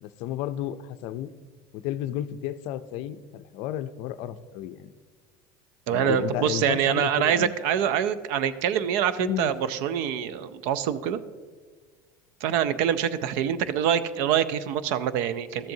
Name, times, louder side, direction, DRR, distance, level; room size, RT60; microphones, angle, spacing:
voice 1, 0.0-1.3 1.7-4.9 5.9-7.5 9.2-9.5, left 12 dB, 60° left, 13 dB, 0.4 m, -32 dB
voice 2, 5.9-11.2 12.4-15.7, right 9 dB, 70° right, 14 dB, 0.5 m, -25 dB
13.0 x 7.7 x 2.7 m, 1.5 s
supercardioid pair, 130°, 11 cm